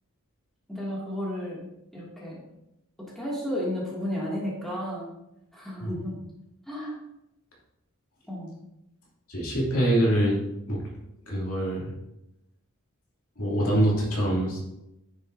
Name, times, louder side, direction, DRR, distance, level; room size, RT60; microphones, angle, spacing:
voice 1, 0.7-1.7 1.9-2.4 3.2-5.1 5.5-6.1 6.7-6.9 8.3-8.5, equal, ahead, -6 dB, 2.3 m, -32 dB
voice 2, 9.3-10.3 10.7-10.8 11.3-11.9 13.4-14.6, right 1 dB, 70° left, -4 dB, 2.7 m, -24 dB
9.5 x 7.2 x 2.7 m, 0.88 s
head